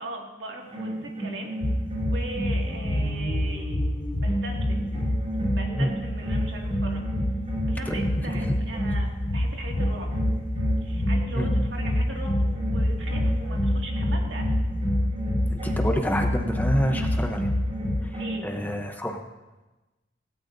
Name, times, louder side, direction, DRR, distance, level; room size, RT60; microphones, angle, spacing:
voice 1, 0.0-1.5 2.0-3.8 4.1-4.9 5.5-7.0 7.7-10.1 10.8-14.5 18.2-18.7, right 2 dB, 75° right, 0 dB, 2.2 m, -39 dB
sound 1, 0.6-9.4 9.8-18.4, right 1 dB, 35° right, 5.9 m, -33 dB
sound 2, 1.6-18.0, left 1 dB, 45° left, 0.7 m, -27 dB
voice 2, 15.5-17.5 18.0-19.2, equal, 10° left, 3 dB, 0.8 m, -28 dB
17.0 x 17.0 x 2.7 m, 1.1 s
head